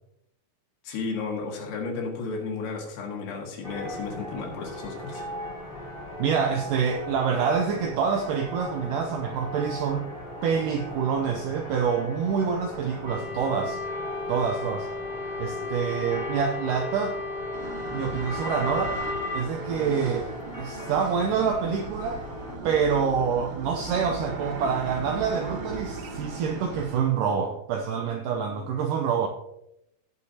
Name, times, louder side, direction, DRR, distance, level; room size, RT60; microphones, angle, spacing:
voice 1, 0.9-5.3, left 4 dB, 80° left, 0 dB, 4.0 m, -33 dB
sound 1, 3.6-22.6, equal, 20° left, 1.7 m, -39 dB
voice 2, 6.2-10.1 10.4-13.8 14.3-14.9 15.4-17.2 17.9-19.0 19.3-20.3 20.6-22.2 22.6-29.3, right 6 dB, 80° right, 4 dB, 1.9 m, -26 dB
sound 2, 13.1-19.4, left 3 dB, 40° left, 1.8 m, -34 dB
sound 3, 17.5-27.0, right 3 dB, 65° right, 1.5 m, -38 dB
18.0 x 7.0 x 2.8 m, 0.82 s
omnidirectional pair, 4.6 m